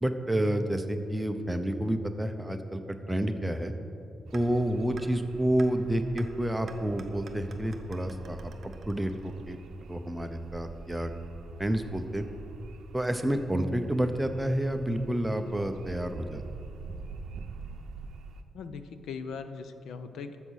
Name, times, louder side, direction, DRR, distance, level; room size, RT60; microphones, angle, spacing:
voice 1, 0.0-3.7 4.3-11.1 11.6-12.2 12.9-16.4, right 1 dB, 5° right, 7 dB, 0.6 m, -29 dB
sound 1, 4.3-4.4 5.0-5.1 5.6-5.7 6.2-6.3 6.7-9.6, right 5 dB, 35° right, 0.9 m, -49 dB
sound 2, 4.3-18.4, right 4 dB, 70° right, 0.6 m, -46 dB
voice 2, 18.5-20.4, left 5 dB, 80° left, 10 dB, 0.7 m, -39 dB
13.5 x 7.3 x 6.3 m, 2.7 s
wide cardioid pair, 165°, 0 cm